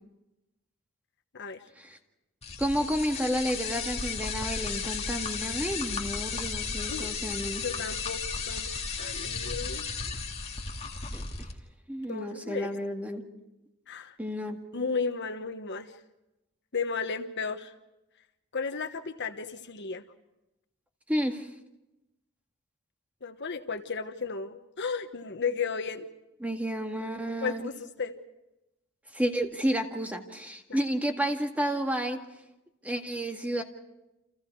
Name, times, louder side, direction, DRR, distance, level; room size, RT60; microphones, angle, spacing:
sound 1, 2.4-11.5, left 5 dB, 30° left, 2.3 m, -34 dB
voice 1, 2.6-7.6 11.1-11.3 11.9-13.2 14.2-14.6 21.1-21.5 26.4-27.6 29.1-32.2 32.8-33.6, equal, 5° right, 4 dB, 1.8 m, -31 dB
voice 2, 7.6-8.7 9.0-9.9 12.1-12.7 13.9-14.1 14.7-15.9 16.7-17.7 18.5-20.0 23.2-26.1 27.4-28.1 30.7-30.8, left 5 dB, 55° left, 8 dB, 1.3 m, -34 dB
30.0 x 27.5 x 4.7 m, 0.95 s
head